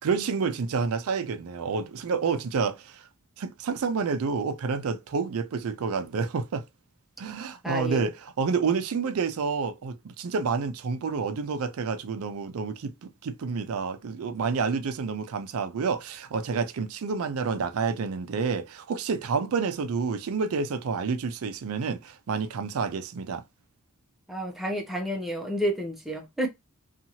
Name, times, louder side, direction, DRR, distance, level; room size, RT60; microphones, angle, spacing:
voice 1, 0.0-3.0 3.4-6.7 7.2-23.4, right 5 dB, 80° right, 0.4 m, -29 dB
voice 2, 7.6-8.1 24.3-26.5, right 1 dB, ahead, 0.5 m, -30 dB
2.7 x 2.4 x 2.7 m
head